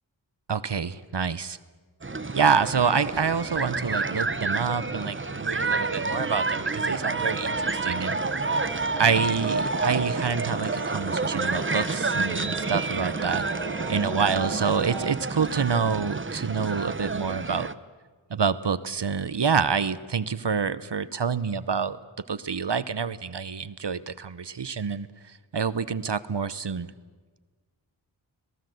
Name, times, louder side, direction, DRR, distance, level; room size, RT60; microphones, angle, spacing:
voice 1, 0.5-1.6 2.3-8.2 9.0-13.4 13.9-17.7 18.3-22.0 22.3-26.9, right 6 dB, 60° right, 15 dB, 0.9 m, -27 dB
sound 1, 2.0-17.7, right 3 dB, 25° right, 0.8 m, -29 dB
sound 2, 4.8-15.1, right 3 dB, 75° right, 1.8 m, -38 dB
26.0 x 18.5 x 7.8 m, 1.4 s
wide cardioid pair, 45°, 47 cm